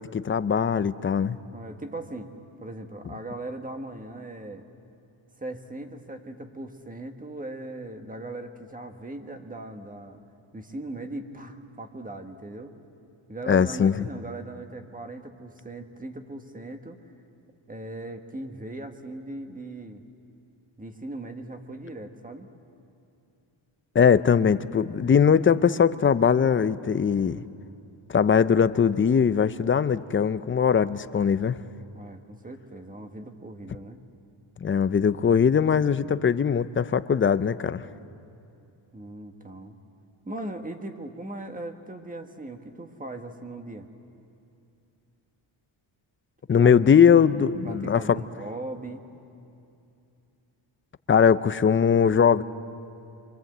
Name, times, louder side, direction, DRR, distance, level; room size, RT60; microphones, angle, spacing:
voice 1, 0.0-1.4 13.5-14.1 23.9-27.4 28.1-31.6 34.6-37.8 46.5-48.2 51.1-52.4, left 7 dB, 25° left, 14 dB, 0.5 m, -21 dB
voice 2, 1.5-2.3 2.6-4.7 5.4-10.2 10.5-12.7 13.3-17.0 17.7-20.0 20.8-22.5 31.9-34.0 38.9-39.8 40.2-43.9 46.6-46.7 47.6-49.0, right 2 dB, 15° right, 5 dB, 1.5 m, -39 dB
26.5 x 24.5 x 7.9 m, 2.7 s
cardioid pair, 120°, 48 cm